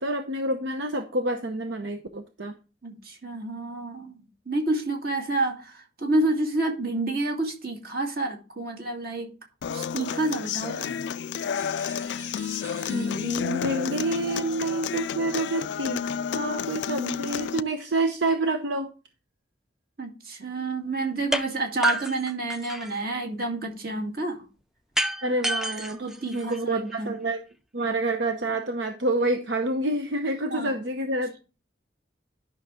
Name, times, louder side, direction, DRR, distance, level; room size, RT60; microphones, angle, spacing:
voice 1, 0.0-2.5 12.9-18.9 25.2-27.4 27.7-31.4, right 2 dB, 70° right, 0.8 m, -28 dB
voice 2, 2.8-9.3 9.7-11.0 20.0-24.5 26.0-27.1 30.5-30.7, right 2 dB, 50° right, 2.2 m, -29 dB
Human voice / Acoustic guitar, 9.6-17.6, left 7 dB, 70° left, 0.3 m, -31 dB
sound 1, 11.5-13.7, right 3 dB, 20° right, 3.0 m, -47 dB
sound 2, 21.3-21.5 21.8-23.0 25.0-26.9, right 1 dB, 5° right, 0.5 m, -28 dB
11.0 x 6.0 x 3.7 m
head